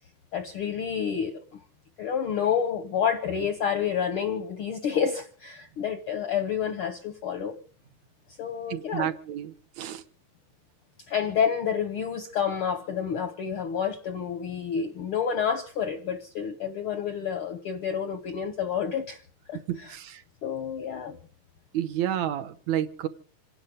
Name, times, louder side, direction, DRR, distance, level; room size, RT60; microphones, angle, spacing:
voice 1, 0.3-1.4 2.0-7.6 8.4-9.1 11.1-19.2 19.5-20.0 20.4-21.2, left 7 dB, 70° left, 1.3 m, -29 dB
voice 2, 8.7-10.0 19.7-20.2 21.7-23.1, right 11 dB, 70° right, 2.2 m, -30 dB
27.0 x 10.5 x 5.0 m
omnidirectional pair, 3.5 m